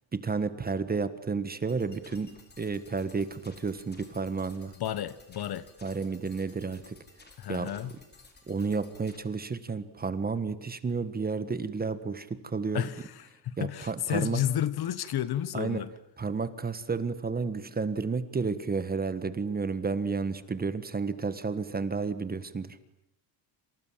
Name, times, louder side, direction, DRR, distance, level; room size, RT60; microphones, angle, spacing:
voice 1, 0.1-4.7 5.8-7.0 7.5-7.7 8.5-12.9 13.6-14.4 15.5-15.9 16.2-22.8, right 4 dB, 20° right, 1.5 m, -31 dB
sound 1, 1.7-9.2, left 3 dB, 20° left, 5.1 m, -56 dB
voice 2, 4.8-5.7 7.4-7.9 12.7-15.9, left 11 dB, 50° left, 1.5 m, -31 dB
28.0 x 27.5 x 7.5 m
cardioid pair, 165°, 48 cm